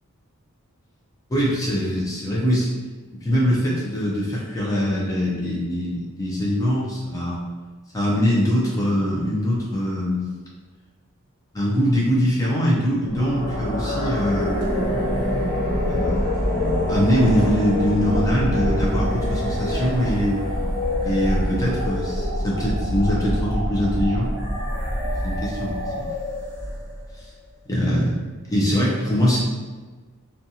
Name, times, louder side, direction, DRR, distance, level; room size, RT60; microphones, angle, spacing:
voice 1, 1.3-2.7 3.2-7.4 7.9-10.3 11.5-14.7 15.8-16.3 16.9-20.4 21.0-24.3 25.2-26.1 27.7-28.2 28.5-29.4, equal, 15° left, -6 dB, 0.4 m, -22 dB
sound 1, 13.0-27.1, left 1 dB, 40° left, 1.0 m, -25 dB
2.5 x 2.3 x 2.7 m, 1.4 s
head